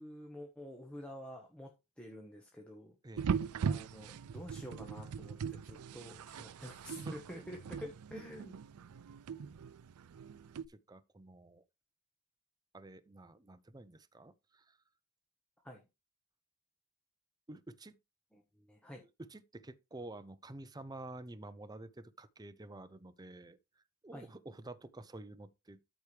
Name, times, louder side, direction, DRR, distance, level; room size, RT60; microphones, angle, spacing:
voice 1, 0.0-1.7 2.0-2.9 3.6-8.6 15.6-15.9 18.3-19.0 24.1-24.3, equal, 5° left, 1.3 m, -49 dB
sound 1, 3.2-10.7, right 6 dB, 90° right, 0.4 m, -40 dB
voice 2, 10.7-11.6 12.7-14.8 17.5-18.0 19.3-23.6 24.0-25.8, right 2 dB, 20° right, 0.6 m, -50 dB
13.0 x 4.7 x 3.3 m
head